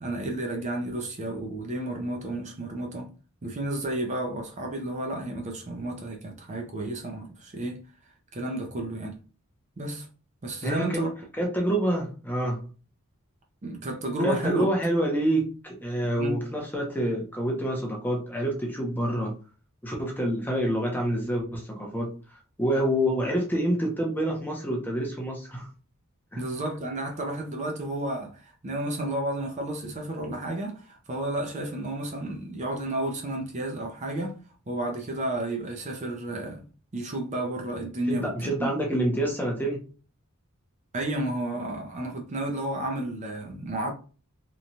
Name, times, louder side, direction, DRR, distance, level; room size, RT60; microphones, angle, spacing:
voice 1, 0.0-3.1 3.4-7.8 8.3-9.2 9.8-10.1 10.4-11.1 13.6-14.7 16.2-16.4 26.4-34.3 34.7-36.7 36.9-38.7 40.9-43.9, right 1 dB, 35° right, 0.5 m, -32 dB
voice 2, 10.6-11.0 11.4-12.6 14.2-19.3 19.8-22.1 22.6-25.7 26.3-26.4 38.1-39.8, right 1 dB, 10° left, 0.6 m, -27 dB
2.9 x 2.2 x 2.6 m
head